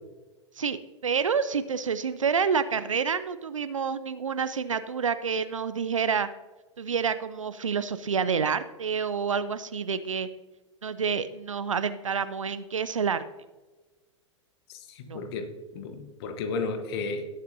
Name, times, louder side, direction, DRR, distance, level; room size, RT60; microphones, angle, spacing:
voice 1, 0.6-6.3 6.8-10.3 10.8-13.2 15.1-15.2, right 6 dB, 85° right, 12 dB, 0.5 m, -28 dB
voice 2, 14.7-17.3, left 4 dB, 55° left, 7 dB, 1.3 m, -33 dB
18.0 x 7.5 x 2.8 m, 1.2 s
figure-of-eight pair, 100°, 16 cm